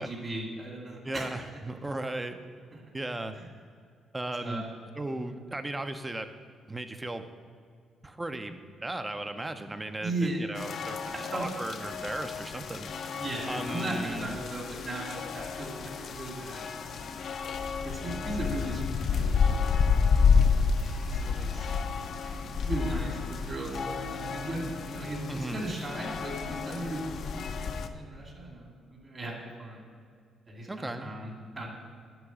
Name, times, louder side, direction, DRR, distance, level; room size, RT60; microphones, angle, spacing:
voice 1, 0.0-1.3 2.7-2.8 3.3-3.4 4.4-4.7 10.0-10.5 11.1-11.5 13.1-17.2 17.8-19.7 20.4-20.7 21.1-21.8 22.6-29.8 30.5-31.7, right 2 dB, 35° right, -1 dB, 2.3 m, -37 dB
voice 2, 1.0-2.4 2.9-3.4 4.1-4.6 5.0-6.3 6.7-7.3 8.0-12.9 13.5-14.4 25.3-25.7 30.7-31.1, right 2 dB, 15° right, 8 dB, 0.6 m, -36 dB
sound 1, 10.6-27.9, left 5 dB, 60° left, 0.5 m, -30 dB
sound 2, 19.0-25.7, right 2 dB, 80° right, 1.7 m, -45 dB
10.5 x 3.8 x 7.2 m, 2.1 s
cardioid pair, 90°, 0 cm